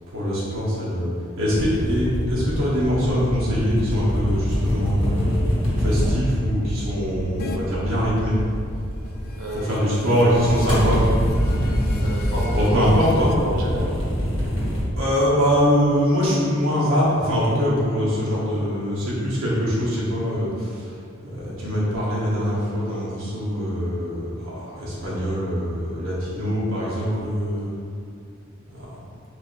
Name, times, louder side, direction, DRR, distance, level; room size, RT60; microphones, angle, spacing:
voice 1, 0.1-5.4 5.8-8.4 9.5-11.1 12.5-13.3 15.0-20.9 21.3-27.7 28.7-29.0, equal, 65° right, -7 dB, 1.2 m, -23 dB
sound 1, 1.5-9.6 10.2-14.8, equal, 25° left, 1.4 m, -25 dB
sound 2, 7.4-7.6 9.0-13.4, left 4 dB, 45° left, 0.3 m, -40 dB
voice 2, 9.4-10.1 11.9-14.0, right 1 dB, 85° right, -2 dB, 0.8 m, -31 dB
4.6 x 2.6 x 4.3 m, 2.3 s
head